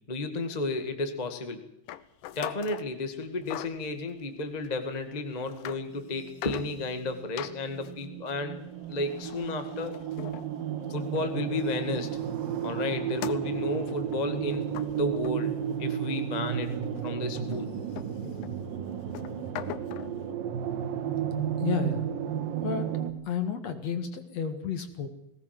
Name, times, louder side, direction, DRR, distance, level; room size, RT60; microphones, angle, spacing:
voice 1, 0.1-1.6 2.3-8.6 8.9-10.0 10.9-12.2 12.6-16.7 17.0-17.7, left 2 dB, 20° left, 7 dB, 1.2 m, -33 dB
sound 1, 1.9-2.9 3.4-3.8 4.6-4.7 5.3-5.8 6.2-7.0 7.4-11.4 11.7-16.1 16.4-20.2, left 13 dB, 85° left, 2.7 m, -42 dB
sound 2, 6.2-23.1, right 9 dB, 80° right, 3.4 m, -33 dB
voice 2, 21.6-22.1 22.6-22.9 23.3-25.1, left 7 dB, 55° left, 8 dB, 2.7 m, -31 dB
20.5 x 18.0 x 7.7 m, 0.83 s
omnidirectional pair, 4.0 m